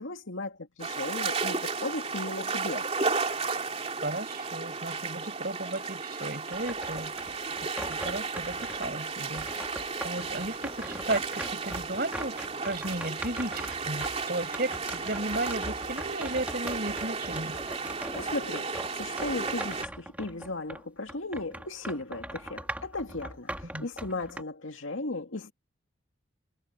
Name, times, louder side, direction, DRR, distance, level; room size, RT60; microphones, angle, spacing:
voice 1, 0.0-2.9 18.1-25.5, left 2 dB, 80° left, 2.3 m, -36 dB
sound 1, 0.8-19.8, right 4 dB, 30° right, 3.0 m, -34 dB
voice 2, 4.0-7.1 7.9-9.5 10.0-17.6 23.7-23.9, right 2 dB, 50° right, 6.4 m, -34 dB
sound 2, 6.5-9.0 9.3-20.8 21.1-24.4, right 1 dB, 5° right, 2.7 m, -41 dB
head